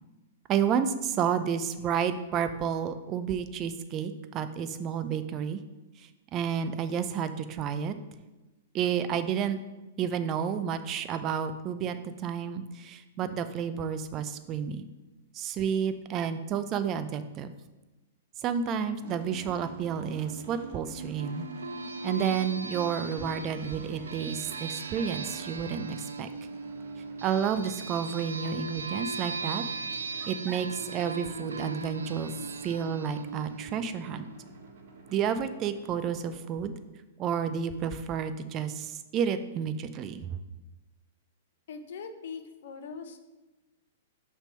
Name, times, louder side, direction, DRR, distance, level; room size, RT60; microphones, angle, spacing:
voice 1, 0.5-5.6 6.0-8.0 8.7-9.6 10.0-14.8 15.3-17.5 18.4-21.5 22.0-26.3 27.2-29.6 30.0-32.3 32.6-34.2 35.1-36.7 37.2-40.4, right 7 dB, 35° right, 10 dB, 0.5 m, -31 dB
sound 1, 19.0-36.9, right 2 dB, 55° right, 1.2 m, -47 dB
sound 2, 21.2-34.4, right 3 dB, 85° right, 0.4 m, -39 dB
voice 2, 41.7-43.2, left 5 dB, 65° left, 8 dB, 0.7 m, -41 dB
5.9 x 3.5 x 5.6 m, 1.1 s
hypercardioid pair, 115°, 0 cm